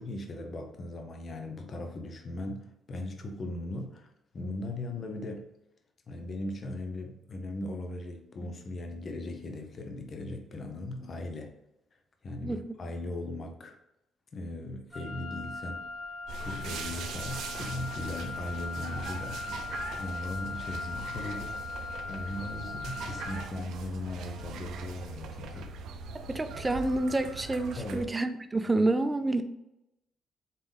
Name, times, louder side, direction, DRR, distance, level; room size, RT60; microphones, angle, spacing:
voice 1, 0.0-4.1 4.3-5.5 6.1-11.5 12.2-13.7 14.3-15.9 16.4-19.4 19.9-21.8 22.1-25.7 27.8-28.1, left 1 dB, 45° left, 4 dB, 0.7 m, -38 dB
Wind instrument woodwind instrument, 14.9-23.6, left 4 dB, 20° left, 1.6 m, -40 dB
sound 1, 16.3-28.0, right 4 dB, 80° right, 0.4 m, -41 dB
voice 2, 26.1-29.4, right 2 dB, 20° right, 9 dB, 0.4 m, -28 dB
4.1 x 3.4 x 3.6 m, 0.87 s
cardioid pair, 90°, 0 cm